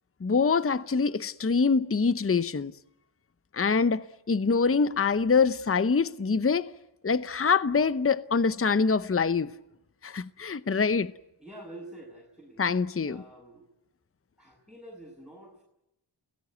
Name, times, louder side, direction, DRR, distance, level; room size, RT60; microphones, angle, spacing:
voice 1, 0.2-2.7 3.5-6.7 7.0-9.5 10.0-11.1 12.6-13.2, left 5 dB, 25° left, 0.9 m, -25 dB
voice 2, 11.4-12.7 13.0-13.7 14.4-15.6, right 1 dB, ahead, 7.5 m, -47 dB
29.5 x 17.0 x 9.4 m
cardioid pair, 40°, 50 cm